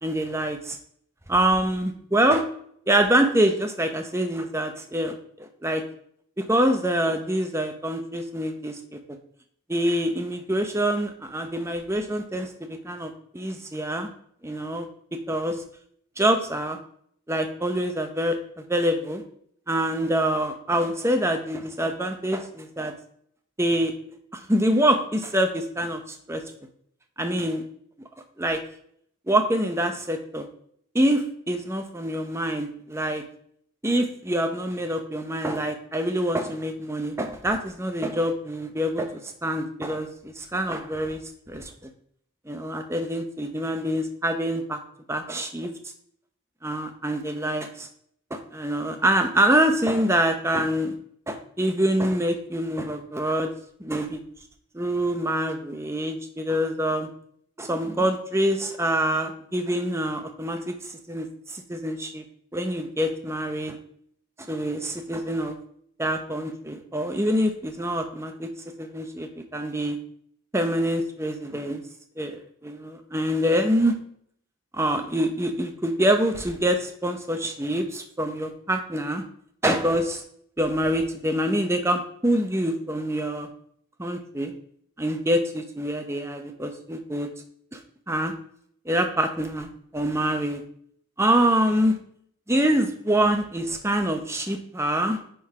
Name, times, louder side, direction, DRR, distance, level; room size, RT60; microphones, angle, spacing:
voice 1, 0.0-0.8 1.3-2.4 2.9-5.8 6.4-9.0 9.7-14.1 14.4-14.9 15.3-15.6 16.2-16.8 17.3-19.2 19.7-22.9 23.6-23.9 24.3-26.4 27.2-27.6 28.4-28.6 29.3-30.5 30.9-33.2 33.8-41.2 41.5-41.7 42.5-44.8 45.1-45.7 46.6-47.9 48.3-50.9 51.3-53.5 53.8-54.2 54.7-57.1 57.6-62.2 62.5-63.8 64.5-65.6 66.0-68.5 68.8-70.0 70.5-71.8 72.2-74.0 74.7-79.2 79.6-80.2 80.6-83.5 84.0-84.5 85.0-87.3 87.7-87.8 88.1-88.3 88.9-90.6 91.2-92.0 92.5-95.2, right 1 dB, 15° right, 6 dB, 0.7 m, -25 dB
9.8 x 3.9 x 4.8 m, 0.66 s
head